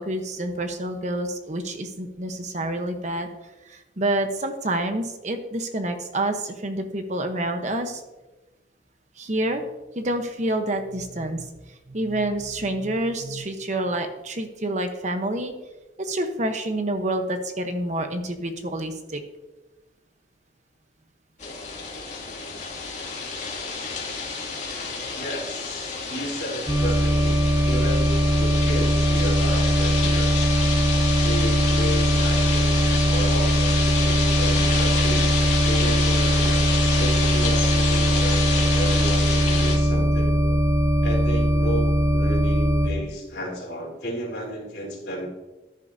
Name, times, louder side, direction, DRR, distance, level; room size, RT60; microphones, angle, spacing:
voice 1, 0.0-3.3 3.6-8.0 9.2-9.6 9.9-15.5 16.0-19.2, right 1 dB, 40° right, 6 dB, 1.0 m, -28 dB
sound 1, 21.4-39.8, left 4 dB, 40° left, 2.5 m, -29 dB
voice 2, 25.2-30.3 31.2-35.4 35.6-36.7 37.0-40.6 41.0-45.3, equal, 70° left, -3 dB, 3.9 m, -33 dB
sound 2, 26.7-42.9, equal, 20° right, 1.4 m, -20 dB
14.0 x 10.5 x 2.8 m, 1.1 s
head